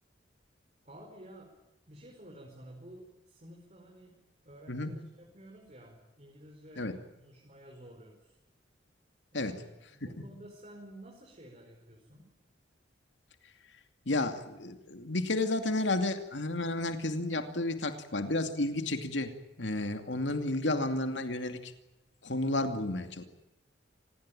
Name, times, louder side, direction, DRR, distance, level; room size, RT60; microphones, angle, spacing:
voice 1, 0.8-1.5 1.9-8.4 9.3-12.3, right 1 dB, 40° right, 0 dB, 5.1 m, -52 dB
voice 2, 14.1-21.7 22.2-23.2, left 2 dB, 85° left, 7 dB, 2.5 m, -32 dB
27.0 x 20.0 x 9.0 m, 0.96 s
head